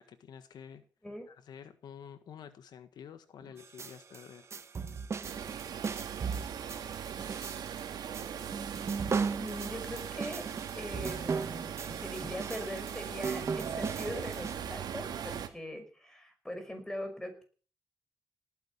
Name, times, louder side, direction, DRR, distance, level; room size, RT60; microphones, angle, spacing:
voice 1, 0.0-0.8 1.3-4.5, left 8 dB, 80° left, 10 dB, 1.6 m, -49 dB
sound 1, 3.6-14.6, right 5 dB, 40° right, 1.2 m, -37 dB
sound 2, 5.2-15.5, right 8 dB, 75° right, 2.5 m, -40 dB
voice 2, 9.4-10.5 10.7-17.4, equal, 10° left, 6 dB, 5.6 m, -41 dB
19.0 x 10.5 x 7.2 m, 0.41 s
wide cardioid pair, 125°, 7 cm